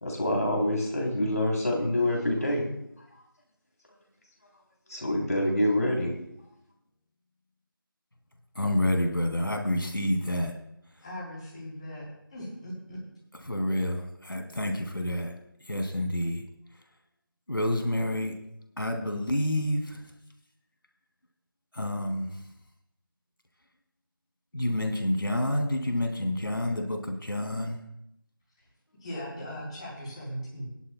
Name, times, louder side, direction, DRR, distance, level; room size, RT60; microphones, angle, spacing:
voice 1, 0.0-2.6 4.9-6.1, left 1 dB, 45° left, -1 dB, 3.2 m, -26 dB
voice 2, 8.5-10.5 13.4-15.3 15.6-16.4 17.5-18.3 18.8-20.1 21.7-22.3 24.5-27.8, left 1 dB, 75° left, 4 dB, 2.3 m, -28 dB
voice 3, 11.0-13.0 29.0-30.7, equal, 15° left, -7 dB, 3.8 m, -39 dB
20.5 x 11.0 x 2.2 m, 0.76 s
figure-of-eight pair, 170°, 12 cm